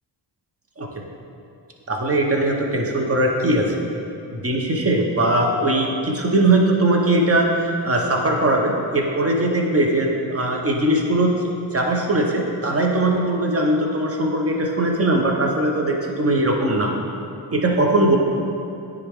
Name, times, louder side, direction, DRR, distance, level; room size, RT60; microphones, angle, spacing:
voice 1, 1.9-3.8 4.3-16.9 17.5-18.2, right 1 dB, 30° right, 1 dB, 1.0 m, -20 dB
9.6 x 3.7 x 3.7 m, 2.7 s
cardioid pair, 65°, 44 cm